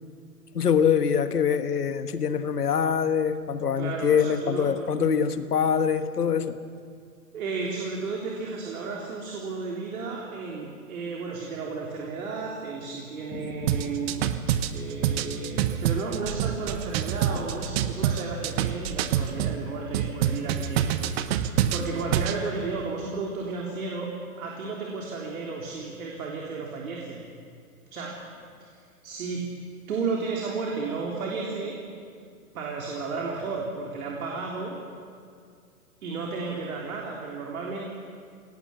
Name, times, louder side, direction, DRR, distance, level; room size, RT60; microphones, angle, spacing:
voice 1, 0.5-6.6 13.3-13.9 17.3-17.4, left 7 dB, 80° left, 10 dB, 1.5 m, -24 dB
voice 2, 3.8-4.9 7.3-14.3 14.7-24.1 24.4-27.2 27.9-28.2 28.6-28.7 29.0-29.4 29.9-31.8 32.5-34.8 36.0-37.9, right 4 dB, 65° right, -1 dB, 3.6 m, -33 dB
sound 1, 13.7-19.6 19.9-22.4, right 10 dB, 40° right, 1.2 m, -26 dB
22.0 x 18.5 x 6.9 m, 2.3 s
hypercardioid pair, 120°, 46 cm